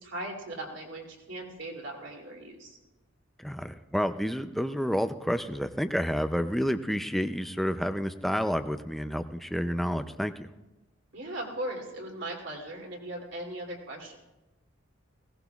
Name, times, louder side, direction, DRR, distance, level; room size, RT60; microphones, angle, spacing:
voice 1, 0.0-2.8 11.1-14.2, right 1 dB, 60° right, 0 dB, 2.9 m, -38 dB
voice 2, 3.4-10.5, equal, ahead, 9 dB, 0.4 m, -29 dB
20.0 x 17.5 x 2.4 m, 1.1 s
head